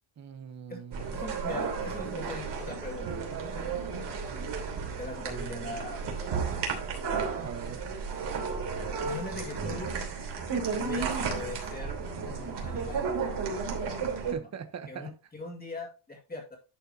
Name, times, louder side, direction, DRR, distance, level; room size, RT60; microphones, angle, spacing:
voice 1, 0.2-1.2 7.4-7.9 14.3-15.1, right 7 dB, 35° right, 1.0 m, -42 dB
sound 1, 0.9-14.3, right 5 dB, 55° right, 3.0 m, -33 dB
voice 2, 1.1-3.7 5.0-6.6 9.0-9.9 10.8-12.0 12.2-13.1 14.4-14.5 14.9-16.6, left 2 dB, 20° left, 2.2 m, -41 dB
11.0 x 6.6 x 2.8 m
cardioid pair, 155°, 49 cm